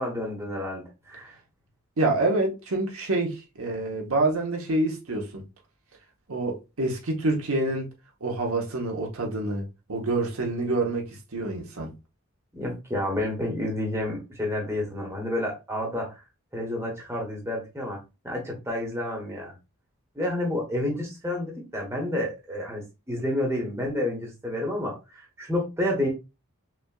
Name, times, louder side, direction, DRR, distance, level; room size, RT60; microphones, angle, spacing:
voice 1, 0.0-1.3 12.5-16.2 16.5-19.5 20.1-26.1, left 1 dB, 10° right, 1.1 m, -30 dB
voice 2, 2.0-5.4 6.3-7.9 8.2-9.6 9.9-11.9, right 2 dB, 85° right, 1.0 m, -27 dB
5.7 x 2.4 x 2.3 m
head